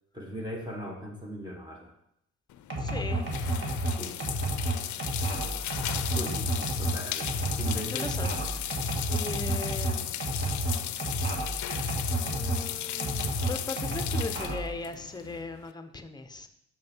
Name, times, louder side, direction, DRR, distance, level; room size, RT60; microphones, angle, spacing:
voice 1, 0.1-1.9 3.9-4.2 6.1-8.1, equal, 15° right, 0 dB, 1.6 m, -39 dB
sound 1, 2.5-15.7, left 12 dB, 70° left, 0.6 m, -36 dB
sound 2, 2.7-12.7 13.0-14.8, right 1 dB, 40° right, 2.0 m, -31 dB
voice 2, 2.8-3.3 5.2-5.6 7.9-8.7 9.1-10.1 12.3-16.5, left 3 dB, 15° left, 8 dB, 0.7 m, -38 dB
6.3 x 6.2 x 4.5 m, 0.77 s
cardioid pair, 90°, 30 cm